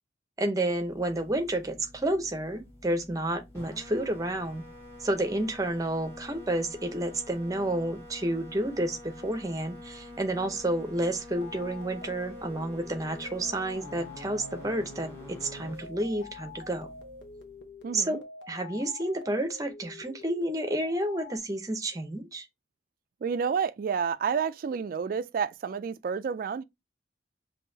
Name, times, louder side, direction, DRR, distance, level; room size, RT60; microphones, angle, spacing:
voice 1, 0.4-4.6 5.0-16.9 17.9-18.2 18.5-22.5, right 1 dB, 20° right, 0.7 m, -30 dB
sound 1, 0.6-17.8, left 1 dB, 15° left, 2.3 m, -47 dB
sound 2, 11.3-21.4, left 3 dB, 80° left, 0.9 m, -46 dB
voice 2, 17.8-18.2 23.2-26.6, right 6 dB, 50° right, 0.3 m, -30 dB
5.4 x 2.8 x 2.7 m
head